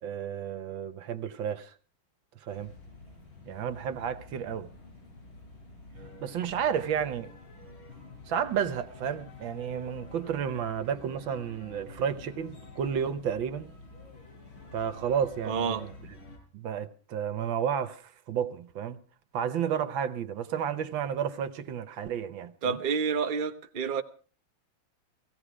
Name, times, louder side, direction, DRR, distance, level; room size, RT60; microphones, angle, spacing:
voice 1, 0.0-1.7 2.4-2.7 3.4-4.7 6.2-7.3 8.3-13.7 14.7-15.9 16.5-19.0 19.3-22.8, right 8 dB, 75° right, 1.7 m, -32 dB
sound 1, 2.5-16.4, left 3 dB, 80° left, 6.2 m, -49 dB
voice 2, 15.4-15.8 22.6-24.0, right 6 dB, 35° right, 0.9 m, -29 dB
17.0 x 16.0 x 4.9 m
omnidirectional pair, 2.2 m